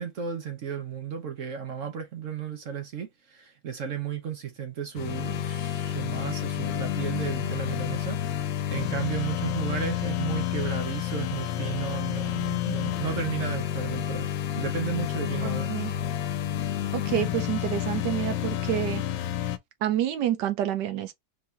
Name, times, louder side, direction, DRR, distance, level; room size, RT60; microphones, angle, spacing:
voice 1, 0.0-14.3 14.6-15.7, right 8 dB, 55° right, 1.1 m, -34 dB
sound 1, 5.0-19.6, left 11 dB, 85° left, 1.3 m, -30 dB
voice 2, 16.9-19.0 19.8-21.1, right 11 dB, 75° right, 1.4 m, -28 dB
4.5 x 2.8 x 3.3 m
omnidirectional pair, 1.9 m